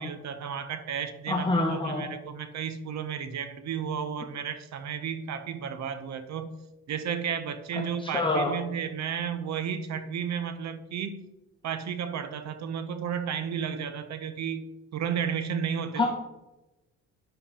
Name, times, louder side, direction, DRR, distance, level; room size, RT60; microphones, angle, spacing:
voice 1, 0.0-6.5 6.9-11.3 11.6-14.6 14.9-16.1, right 7 dB, 65° right, 11 dB, 0.9 m, -33 dB
voice 2, 1.3-2.0 8.0-8.5 16.0-16.1, left 2 dB, 15° left, 0 dB, 1.5 m, -26 dB
10.0 x 7.5 x 4.3 m, 1.0 s
cardioid pair, 90°, 30 cm